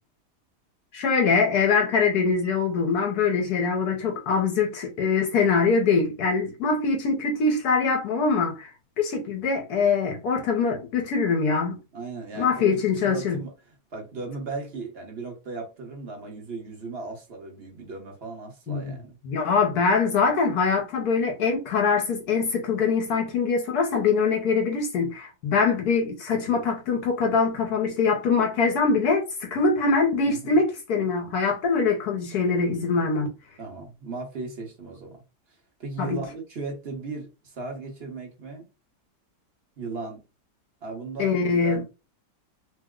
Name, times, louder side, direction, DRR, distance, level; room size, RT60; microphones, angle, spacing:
voice 1, 0.9-8.7 9.0-11.8 12.4-13.4 18.7-18.9 19.2-33.3 36.0-36.2 41.2-41.8, left 4 dB, 70° left, 1.2 m, -23 dB
voice 2, 11.9-13.5 13.9-19.2 30.2-30.6 33.6-35.2 35.8-38.7 39.8-40.2 40.8-41.8, right 3 dB, 45° right, 1.0 m, -37 dB
3.1 x 2.0 x 3.6 m
omnidirectional pair, 1.8 m